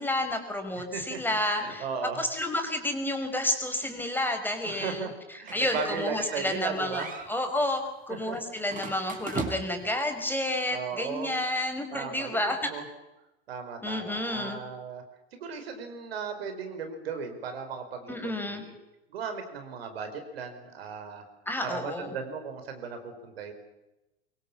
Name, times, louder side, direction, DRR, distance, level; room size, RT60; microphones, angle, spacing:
voice 1, 0.0-1.8 2.2-5.1 5.5-7.0 7.3-12.7 13.8-14.6 18.1-18.6 21.5-22.1, left 1 dB, 5° left, 5 dB, 5.2 m, -30 dB
voice 2, 0.8-2.2 4.6-7.2 8.1-8.4 10.7-11.3 11.9-12.8 13.5-15.0 15.3-18.7 19.1-21.2 21.6-23.5, right 6 dB, 70° right, 6 dB, 4.9 m, -36 dB
sound 1, 5.5-6.6 6.9-7.3 8.7-9.9, right 4 dB, 25° right, 5.2 m, -37 dB
24.5 x 23.5 x 7.3 m, 0.96 s
figure-of-eight pair, 80°, 32 cm